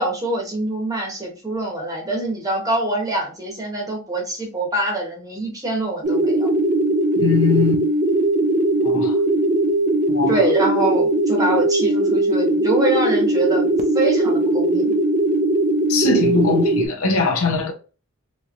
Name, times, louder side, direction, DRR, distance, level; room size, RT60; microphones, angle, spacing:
voice 1, 0.0-6.5 10.3-14.9, right 2 dB, 15° right, 1.0 m, -24 dB
sound 1, 6.0-16.9, right 1 dB, 35° right, 0.4 m, -19 dB
voice 2, 7.2-7.8 8.8-9.1 10.1-10.4 15.9-17.7, left 5 dB, 70° left, 0.7 m, -21 dB
3.1 x 2.7 x 2.4 m
head